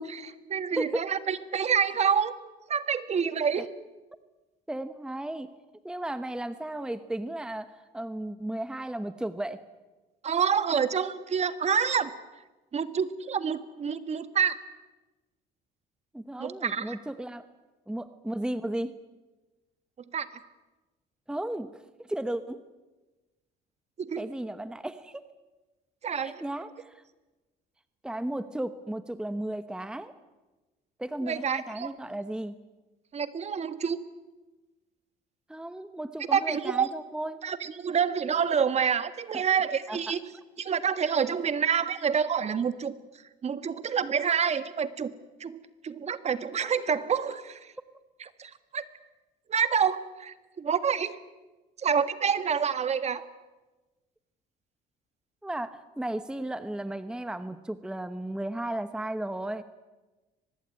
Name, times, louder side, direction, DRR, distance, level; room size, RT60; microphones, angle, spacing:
voice 1, 0.0-2.3 2.7-3.7 10.2-12.1 12.7-14.6 16.4-17.0 20.1-20.3 24.0-24.2 26.0-26.3 31.2-31.9 33.1-34.0 36.3-36.9 37.4-40.2 40.6-42.9 43.4-45.1 45.4-45.6 45.8-47.7 48.4-48.8 49.5-51.2 51.8-53.3, right 7 dB, 40° right, 12 dB, 1.7 m, -27 dB
voice 2, 0.7-1.1 3.6-3.7 4.7-5.5 5.8-9.6 16.1-17.5 17.9-18.9 21.3-22.6 24.2-25.2 26.1-27.0 28.0-30.1 31.0-32.6 35.5-37.4 39.3-39.4 39.9-40.1 55.4-59.6, right 1 dB, 5° right, 11 dB, 1.1 m, -34 dB
24.0 x 20.0 x 9.6 m, 1.2 s
cardioid pair, 110°, 17 cm